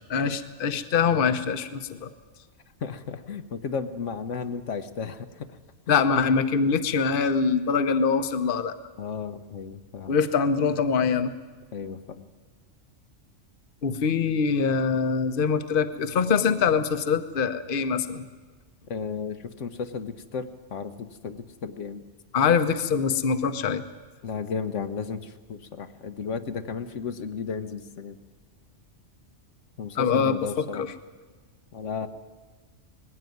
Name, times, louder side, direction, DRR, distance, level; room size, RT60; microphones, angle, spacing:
voice 1, 0.1-2.1 5.9-8.7 10.1-11.3 13.8-18.2 22.3-23.8 30.0-30.9, left 6 dB, 50° left, 9 dB, 1.0 m, -24 dB
voice 2, 2.8-5.5 9.0-10.1 11.7-12.3 18.9-22.0 24.2-28.2 29.8-30.8 31.7-32.1, left 5 dB, 80° left, 9 dB, 1.3 m, -34 dB
19.5 x 15.5 x 9.3 m, 1.3 s
omnidirectional pair, 1.3 m